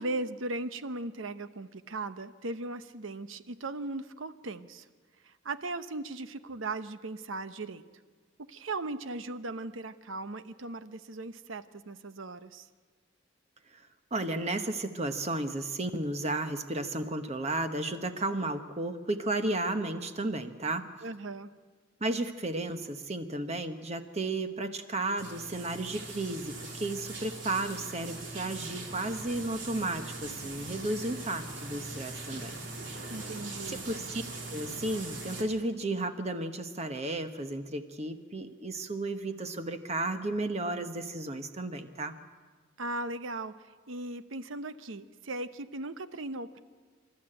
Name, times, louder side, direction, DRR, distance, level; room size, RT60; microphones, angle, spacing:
voice 1, 0.0-4.9 5.2-7.8 8.5-12.7 21.0-21.5 33.1-33.9 42.8-46.6, right 2 dB, 85° right, 12 dB, 0.9 m, -38 dB
voice 2, 14.1-20.9 22.0-32.5 33.7-34.2 34.5-42.1, right 2 dB, 35° right, 8 dB, 1.0 m, -33 dB
sound 1, 25.2-35.4, right 2 dB, 65° right, 3.2 m, -41 dB
27.0 x 12.5 x 8.8 m, 1.5 s
head